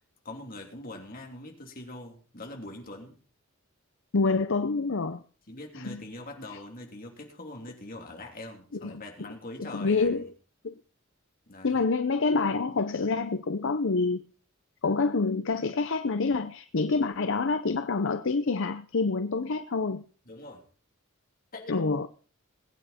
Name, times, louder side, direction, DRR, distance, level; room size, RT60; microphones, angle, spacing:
voice 1, 0.2-3.2 5.5-10.1 11.5-11.9 20.2-20.6 21.5-21.8, left 2 dB, 45° left, 3.2 m, -43 dB
voice 2, 4.1-5.2 5.8-6.0 8.8-8.9 9.6-10.3 10.6-10.7 11.6-14.2 14.8-20.0 21.7-22.1, left 4 dB, 60° left, 0.7 m, -27 dB
20.5 x 9.1 x 4.3 m
head